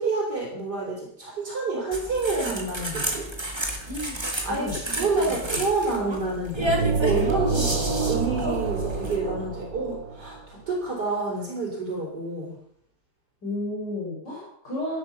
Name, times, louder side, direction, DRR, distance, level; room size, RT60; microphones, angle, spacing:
voice 1, 0.0-3.3 4.4-12.5, right 3 dB, 65° right, -3 dB, 4.2 m, -28 dB
sound 1, 1.9-9.2, right 1 dB, 15° right, 1.9 m, -31 dB
voice 2, 4.5-4.8 5.2-5.6 13.4-15.0, left 1 dB, 75° left, -3 dB, 5.4 m, -32 dB
sound 2, 6.6-10.4, right 4 dB, 85° right, 3.2 m, -27 dB
11.5 x 11.5 x 5.7 m, 0.70 s
omnidirectional pair, 1.9 m